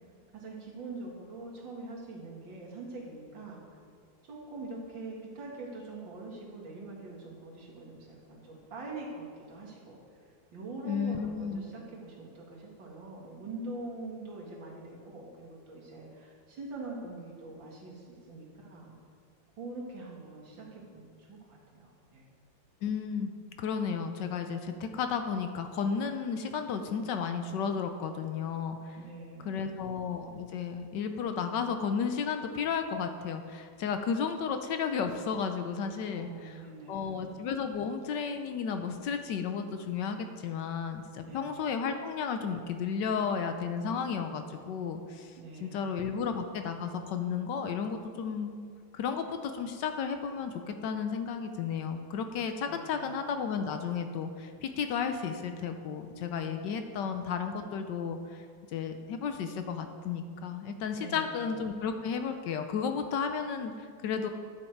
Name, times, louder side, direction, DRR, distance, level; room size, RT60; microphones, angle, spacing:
voice 1, 0.3-3.6 4.3-10.0 10.5-19.0 19.6-22.3 29.0-29.8 36.1-37.3 41.2-41.5 45.4-45.9 52.7-53.1 61.0-61.5, right 2 dB, 75° right, -4 dB, 2.7 m, -44 dB
voice 2, 10.8-11.6 22.8-23.3 23.6-29.0 29.4-36.6 36.9-48.6 48.9-58.4 58.7-64.3, left 6 dB, 70° left, 7 dB, 1.2 m, -33 dB
11.5 x 7.9 x 4.6 m, 2.1 s
omnidirectional pair, 2.1 m